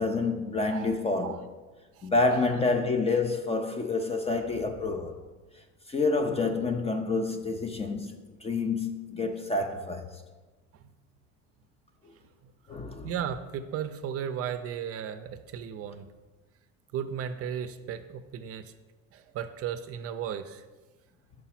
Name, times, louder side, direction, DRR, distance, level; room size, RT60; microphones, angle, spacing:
voice 1, 0.0-1.4 2.0-5.1 5.9-10.1 12.7-13.1, left 3 dB, 20° left, 0.4 m, -28 dB
voice 2, 2.0-2.4 13.0-16.1 16.9-18.7 19.1-20.6, right 8 dB, 40° right, 0.5 m, -35 dB
5.8 x 4.9 x 5.8 m
cardioid pair, 130°, 35 cm